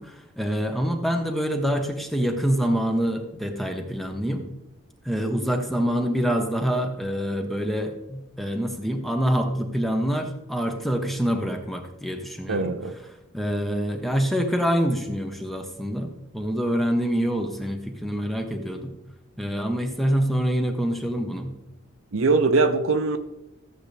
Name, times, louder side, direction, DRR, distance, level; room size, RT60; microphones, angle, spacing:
voice 1, 0.0-4.4 5.0-12.7 13.3-18.9 19.4-21.5, equal, ahead, 1.1 m, -26 dB
voice 2, 12.5-12.9 22.1-23.2, right 3 dB, 70° right, 0.8 m, -21 dB
14.0 x 7.9 x 3.4 m
head